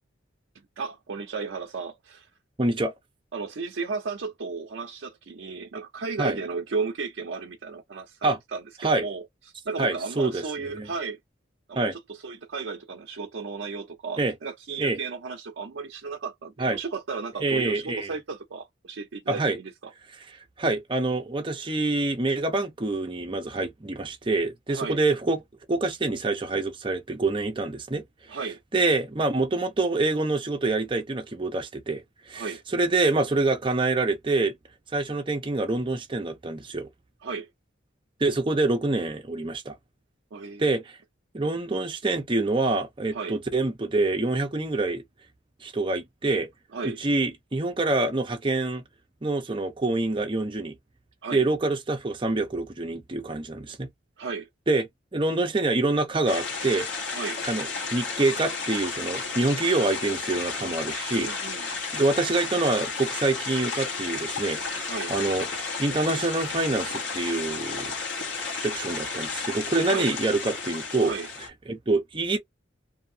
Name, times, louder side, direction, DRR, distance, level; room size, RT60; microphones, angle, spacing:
voice 1, 0.8-2.3 3.3-9.2 9.7-11.2 11.7-19.9 24.7-25.0 28.3-28.6 32.3-32.6 37.2-37.5 40.3-40.7 43.1-43.4 46.7-47.0 51.2-51.5 54.2-54.5 57.1-57.4 61.2-61.7 64.9-65.1 69.8-70.1 71.0-71.3, right 4 dB, 70° right, 0.5 m, -34 dB
voice 2, 2.6-2.9 6.2-6.4 8.2-8.4 8.8-9.0 9.8-10.4 10.7-10.9 11.8-11.9 14.2-14.3 14.8-15.0 16.6-16.8 17.4-18.1 19.3-19.6 20.6-25.4 25.7-28.0 28.7-32.0 32.3-32.5 32.7-34.5 34.9-36.9 38.2-39.7 40.6-41.0 41.3-45.0 45.6-46.5 46.8-48.8 49.2-50.7 51.3-53.9 54.7-56.9 57.4-61.3 61.9-65.5 65.8-67.9 68.6-71.1 71.7-72.4, right 2 dB, 25° right, 0.6 m, -26 dB
sound 1, 56.3-71.5, left 4 dB, 65° left, 1.3 m, -32 dB
2.7 x 2.6 x 2.6 m
head